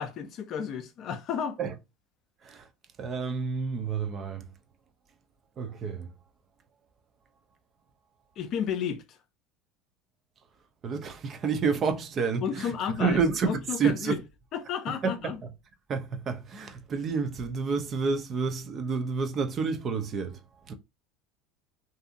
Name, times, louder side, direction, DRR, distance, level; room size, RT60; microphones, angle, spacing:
voice 1, 0.0-1.6 8.4-9.2 12.4-13.2 13.5-14.2 14.5-15.4, left 8 dB, 50° left, 0.5 m, -32 dB
voice 2, 3.0-4.5 5.6-6.1 10.8-12.7 13.0-14.2 15.0-15.3 15.9-20.7, right 5 dB, 40° right, 0.6 m, -29 dB
2.7 x 2.5 x 2.5 m
supercardioid pair, 105°, 0 cm